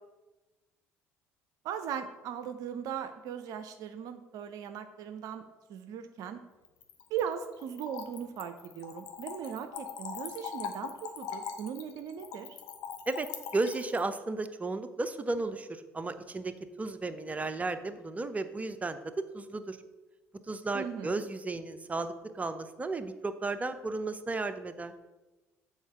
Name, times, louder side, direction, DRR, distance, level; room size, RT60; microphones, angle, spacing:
voice 1, 1.6-5.4 5.7-6.4 7.1-12.6 20.7-21.2, right 8 dB, 60° right, 8 dB, 0.5 m, -38 dB
Splash splatter / Trickle dribble, 6.6-14.0, left 7 dB, 65° left, 0.8 m, -41 dB
voice 2, 13.5-16.5 16.8-19.8 20.5-24.9, right 3 dB, 20° right, 10 dB, 0.6 m, -34 dB
7.1 x 4.2 x 5.6 m, 1.1 s
hypercardioid pair, 55°, 7 cm